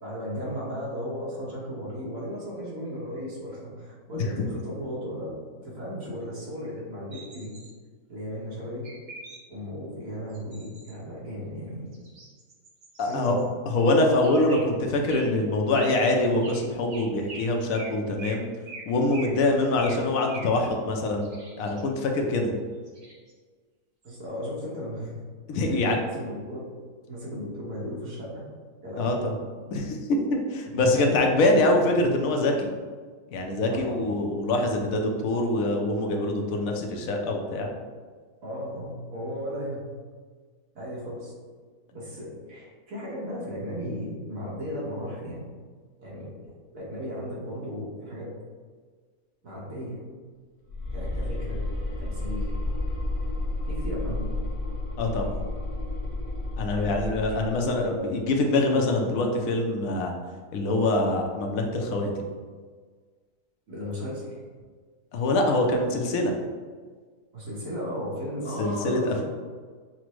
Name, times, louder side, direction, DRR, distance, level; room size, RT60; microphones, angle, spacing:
voice 1, 0.0-7.5 8.1-8.8 9.5-11.9 13.0-13.4 24.0-25.2 25.7-26.7 27.1-28.4 28.8-29.2 30.9-31.9 33.7-34.0 38.4-39.8 40.7-41.3 41.9-45.4 46.0-46.3 46.7-48.3 49.4-50.0 50.9-51.6 51.9-52.5 53.6-54.3 56.7-57.0 57.3-57.5 57.8-58.1 63.7-64.4 67.3-69.3, equal, 65° right, -6 dB, 1.6 m, -35 dB
sound 1, 7.1-7.7 8.8-9.4 10.3-10.9 11.9-13.4 14.2-14.7 15.1-15.3 15.7-16.2 16.4-16.6 16.9-17.5 17.7-17.9 18.2-18.4 18.7-18.8 19.1-19.3 19.8-20.0 20.3-20.5 21.2-21.8 22.9-23.3 24.0-24.1, right 3 dB, 45° right, 0.6 m, -42 dB
voice 2, 13.0-13.4 13.7-18.4 18.9-22.5 25.5-26.0 29.0-29.4 29.7-30.0 30.3-32.7 33.3-37.7 55.0-55.4 56.6-60.1 60.5-62.1 65.1-66.3 68.6-69.1, left 2 dB, 70° left, 2 dB, 1.0 m, -24 dB
Monster growl, 50.7-57.9, left 1 dB, 45° left, 0.4 m, -31 dB
5.9 x 2.1 x 3.0 m, 1.5 s
omnidirectional pair, 1.6 m